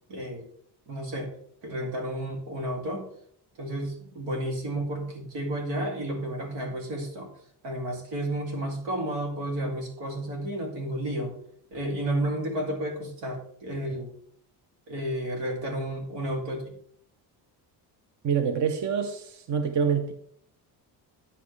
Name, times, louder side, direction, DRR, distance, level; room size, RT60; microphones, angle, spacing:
voice 1, 0.1-0.4 0.9-1.3 1.6-3.1 3.6-7.3 7.6-11.3 11.7-14.1 14.9-16.8, right 1 dB, 85° right, 2 dB, 2.5 m, -32 dB
voice 2, 18.2-20.1, right 7 dB, 45° right, 8 dB, 0.8 m, -26 dB
9.7 x 7.6 x 3.2 m, 0.64 s
cardioid pair, 145°, 41 cm